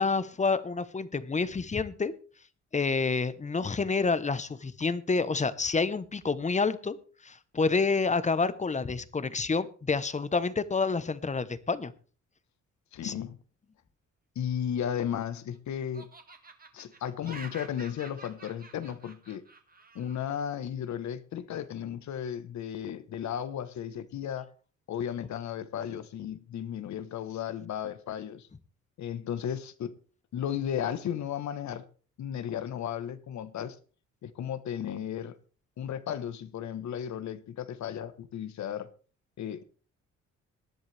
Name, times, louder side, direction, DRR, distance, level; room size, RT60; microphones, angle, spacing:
voice 1, 0.0-2.1 2.7-7.0 7.2-11.9 13.0-13.1, left 4 dB, 25° left, 1.0 m, -28 dB
voice 2, 12.9-13.4 14.3-16.1 16.7-19.4 19.9-24.5 24.9-28.5 29.0-29.9 30.3-31.8 32.2-33.8 34.2-35.4 35.8-38.9 39.4-39.6, left 9 dB, 65° left, 1.2 m, -34 dB
Laughter, 14.7-15.6 15.9-20.3, right 3 dB, 30° right, 1.9 m, -49 dB
18.5 x 10.5 x 3.4 m
cardioid pair, 90°, 30 cm